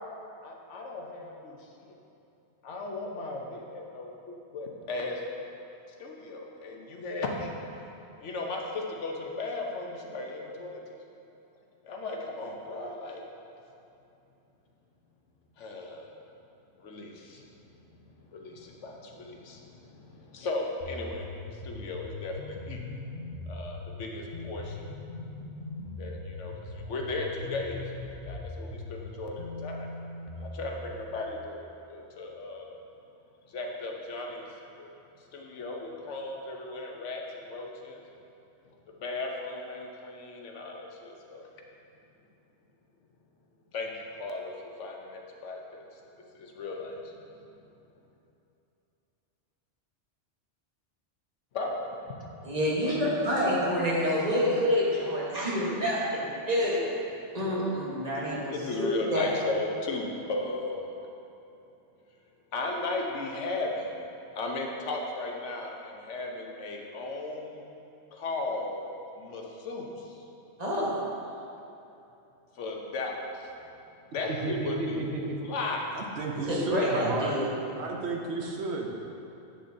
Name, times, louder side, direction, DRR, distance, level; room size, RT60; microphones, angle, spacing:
voice 1, 0.4-1.9 2.6-5.2 6.0-7.5 8.2-11.0 11.8-13.2 15.6-16.1 16.8-17.4 18.1-22.8 23.5-24.9 26.0-29.9 30.4-31.6 31.9-32.8 33.5-34.5 34.8-34.9 35.3-38.2 39.0-41.4 43.7-43.9 44.2-45.8 46.3-47.1 51.5-51.8 58.5-60.9 62.5-64.0 64.3-67.6 68.1-68.8 69.2-70.2 72.5-73.5 74.1-75.0 75.4-75.8, left 2 dB, 85° left, 1 dB, 1.1 m, -36 dB
sound 1, 20.8-30.9, left 2 dB, 55° left, 0.8 m, -40 dB
voice 2, 52.4-56.8 57.3-59.3 70.6-71.0 76.5-77.5, equal, 35° right, -6 dB, 1.3 m, -27 dB
voice 3, 74.1-75.4 75.9-77.4 77.7-78.9, right 3 dB, 70° right, 1 dB, 0.9 m, -32 dB
7.8 x 6.7 x 2.6 m, 2.8 s
omnidirectional pair, 1.2 m